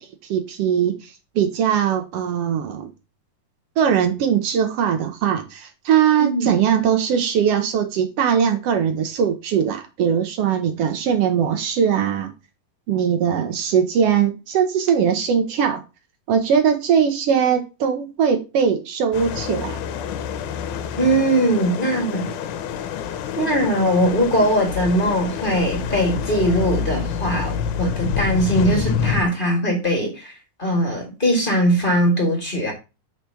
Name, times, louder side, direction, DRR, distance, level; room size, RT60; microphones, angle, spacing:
voice 1, 0.3-2.9 3.8-12.3 12.9-15.8 16.3-19.8, right 8 dB, 70° right, 6 dB, 1.4 m, -20 dB
sound 1, 19.1-29.3, left 7 dB, 75° left, 2.0 m, -27 dB
voice 2, 21.0-22.3 23.4-30.3 30.6-32.7, right 1 dB, 20° left, 0 dB, 1.4 m, -20 dB
4.9 x 4.6 x 5.6 m, 0.28 s
omnidirectional pair, 3.9 m